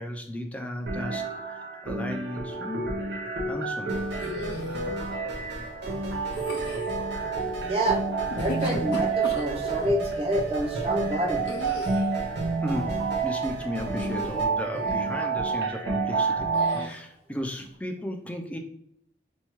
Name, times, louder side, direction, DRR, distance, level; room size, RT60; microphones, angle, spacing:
voice 1, 0.0-3.0 3.5-4.0 12.6-18.6, equal, 5° left, 3 dB, 0.4 m, -35 dB
sound 1, 0.9-16.9, right 4 dB, 90° right, 0.7 m, -29 dB
sound 2, 3.9-14.4, equal, 70° right, 1.0 m, -40 dB
sound 3, 4.2-4.8 6.3-7.0 8.2-9.9 11.5-12.2 13.9-14.4 14.8-15.1 16.5-17.0, left 1 dB, 75° left, 0.7 m, -37 dB
voice 2, 7.6-8.0 8.4-11.5, right 1 dB, 30° right, 0 dB, 0.6 m, -27 dB
4.4 x 2.3 x 2.9 m, 0.71 s
head